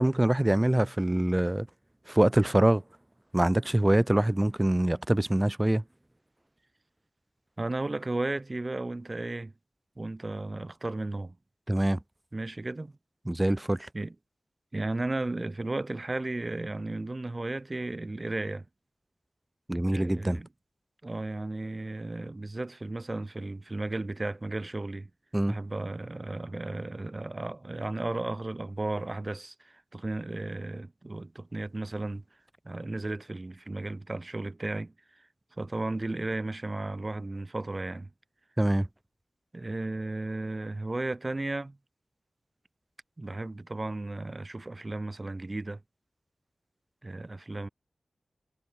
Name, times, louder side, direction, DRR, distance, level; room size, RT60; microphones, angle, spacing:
voice 1, 0.0-1.7 2.1-2.8 3.3-5.8 11.7-12.0 13.3-13.9 19.7-20.4 25.3-25.6 38.6-38.9, right 1 dB, 15° right, 0.4 m, -24 dB
voice 2, 7.6-9.5 10.0-11.4 12.3-12.9 13.9-14.2 14.7-18.7 19.9-20.5 21.0-25.1 25.5-32.2 32.7-34.9 35.6-38.1 39.5-41.8 43.2-45.8 47.0-47.7, right 2 dB, 35° right, 2.0 m, -34 dB
cardioid pair, 50°, 0 cm